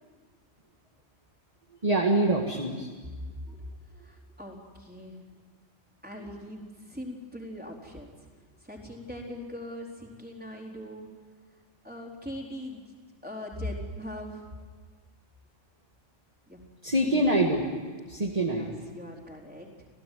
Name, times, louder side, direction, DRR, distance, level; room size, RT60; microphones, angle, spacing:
voice 1, 1.8-2.9 16.8-17.7 18.1-18.7, right 1 dB, 30° right, -1 dB, 2.1 m, -25 dB
voice 2, 3.9-5.2 6.0-8.1 8.6-11.1 11.8-12.8 13.2-14.5 16.5-16.6 18.5-19.9, left 1 dB, 5° right, -1 dB, 4.2 m, -41 dB
28.0 x 17.0 x 9.4 m, 1.5 s
omnidirectional pair, 1.3 m